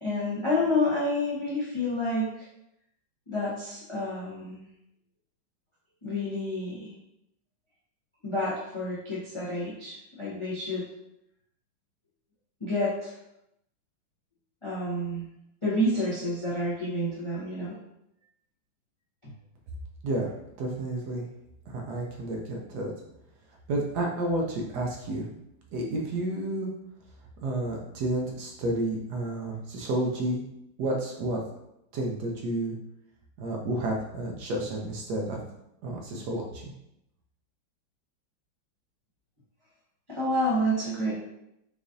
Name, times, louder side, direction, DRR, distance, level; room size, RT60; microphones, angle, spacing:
voice 1, 0.0-2.5 3.3-4.6 6.0-6.9 8.2-10.8 12.6-13.1 14.6-15.3 15.6-17.7 19.2-19.3 40.1-41.1, left 1 dB, 40° left, -8 dB, 0.4 m, -29 dB
voice 2, 20.6-21.3 21.7-22.9 23.7-25.3 25.7-26.7 27.4-30.4 30.8-31.4 31.9-32.7 33.4-35.4 35.8-36.7, right 1 dB, 70° right, 0 dB, 1.1 m, -30 dB
4.8 x 2.5 x 2.5 m, 0.82 s
omnidirectional pair, 2.1 m